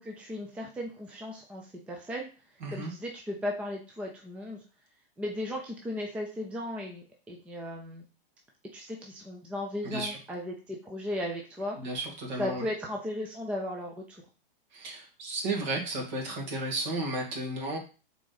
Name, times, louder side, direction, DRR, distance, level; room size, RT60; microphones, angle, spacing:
voice 1, 0.0-2.3 2.7-4.6 5.2-8.0 8.7-11.9 12.4-14.2, left 1 dB, 5° right, 1 dB, 0.5 m, -36 dB
voice 2, 9.8-10.2 11.8-12.7 14.7-17.8, right 2 dB, 50° right, 1 dB, 2.4 m, -33 dB
6.0 x 4.0 x 4.0 m, 0.34 s
hypercardioid pair, 150°, 29 cm